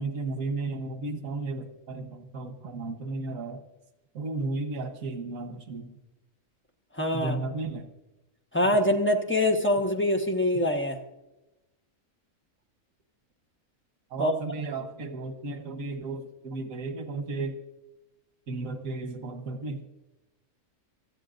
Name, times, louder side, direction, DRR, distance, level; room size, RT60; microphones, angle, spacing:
voice 1, 0.0-3.6 4.1-5.9 7.1-7.9 14.1-17.6 18.5-19.8, right 3 dB, 90° right, 7 dB, 1.5 m, -34 dB
voice 2, 7.0-7.4 8.5-11.0 14.2-14.3, left 1 dB, 10° left, 3 dB, 1.0 m, -24 dB
25.0 x 13.5 x 2.5 m, 0.98 s
omnidirectional pair, 1.4 m